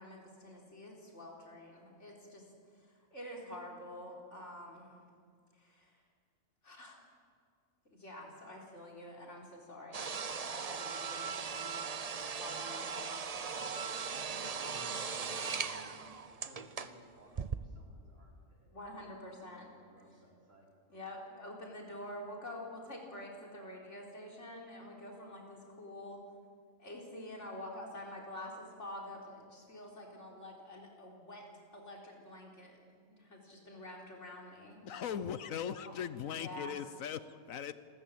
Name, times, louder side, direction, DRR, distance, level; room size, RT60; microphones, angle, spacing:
voice 1, 0.0-2.4 2.7-4.9 5.5-6.0 6.6-7.0 7.9-13.3 18.7-19.8 20.9-26.2 26.8-31.5 31.7-32.8 33.1-35.2 35.7-36.0 36.3-36.8, left 1 dB, 55° left, -1 dB, 4.3 m, -48 dB
sound 1, 9.9-17.0 17.3-17.6, right 5 dB, 35° right, 0.7 m, -39 dB
voice 2, 14.6-18.7 19.0-20.7, equal, 60° right, -2 dB, 4.3 m, -59 dB
voice 3, 34.8-37.7, left 8 dB, 75° left, 13 dB, 1.2 m, -39 dB
27.0 x 14.0 x 8.7 m, 2.1 s
omnidirectional pair, 1.4 m